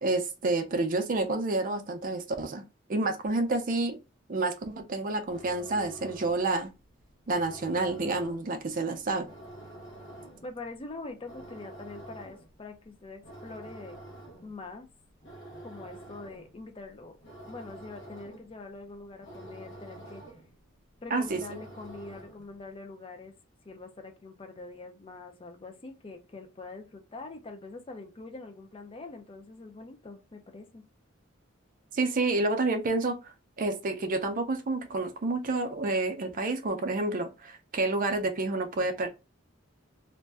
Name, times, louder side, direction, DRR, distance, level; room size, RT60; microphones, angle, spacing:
voice 1, 0.0-2.6 2.9-4.0 4.3-6.7 7.3-9.3 21.1-21.4 31.9-39.1, right 2 dB, 45° right, 0.5 m, -29 dB
sound 1, 5.1-22.6, right 1 dB, 65° left, 0.8 m, -48 dB
voice 2, 10.4-14.0 14.4-14.9 15.6-17.2 17.5-20.2 21.0-23.3 23.6-30.8, left 3 dB, 30° left, 0.5 m, -44 dB
2.6 x 2.1 x 3.3 m
head